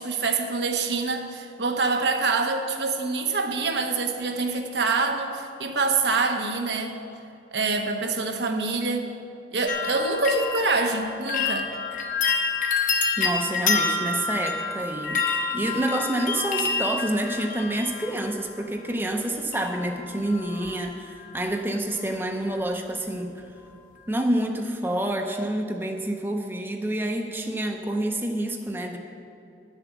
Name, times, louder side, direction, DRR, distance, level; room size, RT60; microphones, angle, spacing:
voice 1, 0.0-7.0 7.5-9.1 9.5-11.7, right 3 dB, 75° right, 4 dB, 1.0 m, -25 dB
sound 1, 9.7-18.6 19.5-20.0 20.3-20.9 21.2-21.3, left 4 dB, 45° left, 1.0 m, -28 dB
voice 2, 13.2-23.5 24.1-29.0, right 1 dB, 10° right, 3 dB, 0.6 m, -28 dB
11.0 x 6.9 x 7.2 m, 2.7 s
head